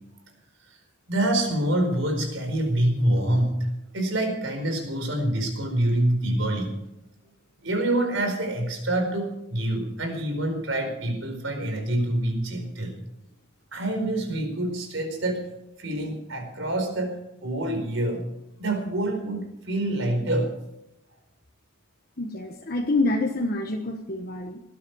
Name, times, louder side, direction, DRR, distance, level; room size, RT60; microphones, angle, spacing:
voice 1, 1.1-3.6 3.9-6.7 7.6-13.0 13.7-15.5 15.8-18.2 18.6-20.5, right 1 dB, 75° right, 5 dB, 4.6 m, -26 dB
voice 2, 22.2-24.6, left 2 dB, 50° left, 1 dB, 1.3 m, -27 dB
19.0 x 13.0 x 4.7 m, 0.86 s
head